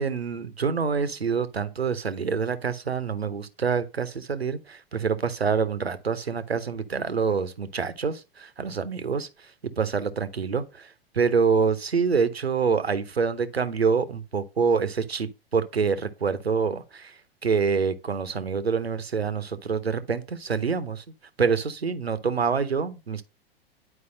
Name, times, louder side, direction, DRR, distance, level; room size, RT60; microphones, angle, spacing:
voice 1, 0.0-9.3 9.8-17.1 17.4-21.0 21.4-23.2, right 5 dB, 85° right, 0.8 m, -26 dB
9.8 x 4.7 x 2.6 m
figure-of-eight pair, 95°, 31 cm